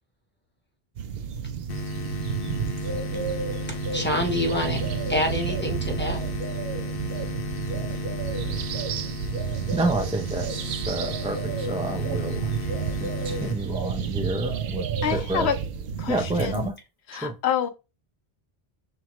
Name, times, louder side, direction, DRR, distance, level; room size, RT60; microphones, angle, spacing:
sound 1, 1.0-16.7, right 6 dB, 70° right, 0.8 m, -31 dB
sound 2, 1.7-14.6, left 1 dB, 65° left, 0.8 m, -35 dB
voice 1, 3.7-4.8 5.1-6.2, left 1 dB, 10° left, 0.8 m, -27 dB
voice 2, 9.7-12.5 13.0-14.8 15.1-15.5 16.1-16.7 17.1-17.3, right 2 dB, 10° right, 0.4 m, -29 dB
voice 3, 15.0-15.6 16.0-16.7 17.1-17.7, left 9 dB, 85° left, 0.9 m, -27 dB
5.9 x 2.6 x 2.9 m
omnidirectional pair, 1.1 m